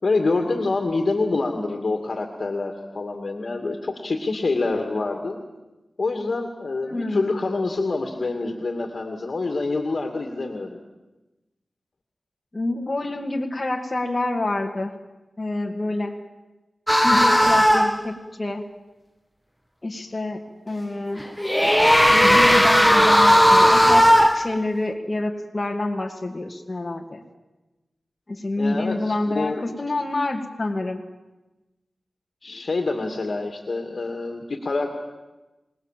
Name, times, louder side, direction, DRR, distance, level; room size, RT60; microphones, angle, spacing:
voice 1, 0.0-5.4 6.0-10.8 28.6-29.7 32.4-34.9, left 3 dB, 55° left, 4 dB, 2.4 m, -26 dB
voice 2, 6.9-7.3 12.5-14.9 15.4-16.1 17.0-18.6 19.8-20.4 20.7-21.2 21.6-21.7 22.1-27.2 28.3-31.0, left 2 dB, 30° left, 1 dB, 2.2 m, -27 dB
sound 1, 16.9-18.1 21.2-24.5, equal, ahead, 1.4 m, -16 dB
26.5 x 19.5 x 7.5 m, 1.1 s
wide cardioid pair, 65°, 0 cm